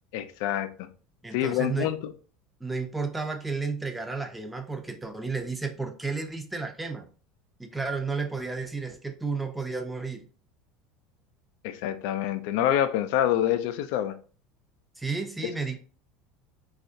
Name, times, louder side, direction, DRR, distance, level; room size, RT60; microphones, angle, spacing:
voice 1, 0.1-0.7 1.3-2.1 11.6-14.1, left 11 dB, 70° left, 11 dB, 0.4 m, -26 dB
voice 2, 1.2-1.9 2.6-7.1 7.6-10.3 15.0-15.8, right 4 dB, 10° right, 5 dB, 0.6 m, -32 dB
4.1 x 2.3 x 2.6 m, 0.39 s
supercardioid pair, 100°, 0 cm